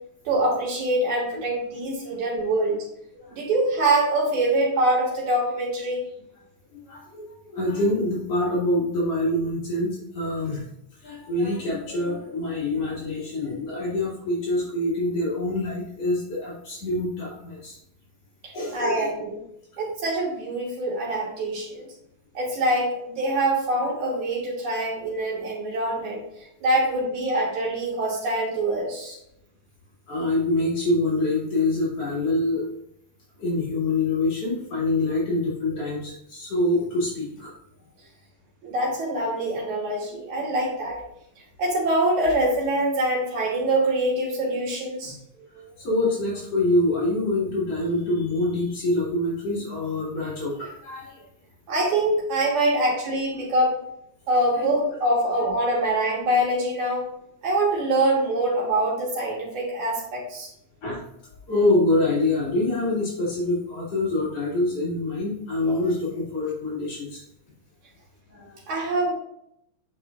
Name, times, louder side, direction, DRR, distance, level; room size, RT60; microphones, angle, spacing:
voice 1, 0.3-2.9 3.3-6.0 18.4-19.4 19.8-21.9 22.4-26.3 26.6-29.2 38.6-41.0 41.6-45.2 51.7-53.8 54.3-57.1 57.4-60.5 68.7-69.1, right 1 dB, 75° right, -4 dB, 3.7 m, -24 dB
voice 2, 6.7-10.6 11.0-17.8 18.5-19.1 19.7-19.8 30.1-32.6 33.4-37.5 45.4-51.2 52.6-52.7 54.5-54.7 60.8-61.0 61.5-67.2 68.3-68.6, left 2 dB, 55° left, -8 dB, 3.7 m, -25 dB
9.6 x 5.3 x 2.6 m, 0.77 s
omnidirectional pair, 3.4 m